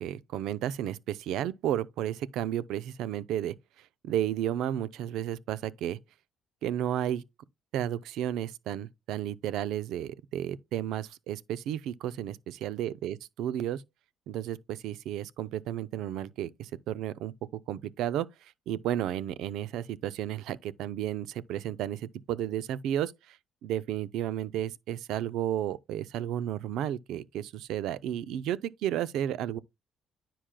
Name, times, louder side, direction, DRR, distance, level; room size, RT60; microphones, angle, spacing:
voice 1, 0.0-3.5 4.0-6.0 6.6-7.2 7.7-13.8 14.3-17.3 17.7-18.3 18.7-23.1 23.6-29.6, right 11 dB, 80° right, 0.5 m, -32 dB
9.9 x 5.8 x 2.2 m
cardioid pair, 95°, 0 cm